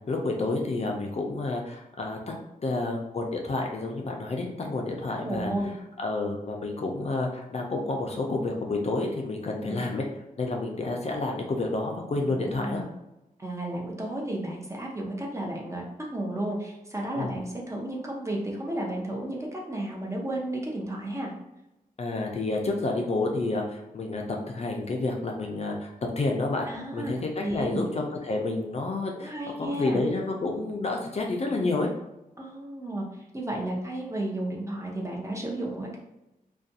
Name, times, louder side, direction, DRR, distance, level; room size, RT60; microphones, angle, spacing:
voice 1, 0.1-2.2 2.6-5.5 6.0-10.1 10.4-12.8 17.2-17.3 22.0-31.9, left 2 dB, 45° left, 1 dB, 0.4 m, -29 dB
voice 2, 5.2-5.7 9.6-9.8 12.2-12.8 13.4-15.8 16.1-21.3 26.7-27.1 27.4-27.8 29.1-30.0 32.4-36.0, right 1 dB, 20° right, -2 dB, 0.5 m, -33 dB
2.4 x 2.2 x 2.6 m, 0.93 s
wide cardioid pair, 115°, 15 cm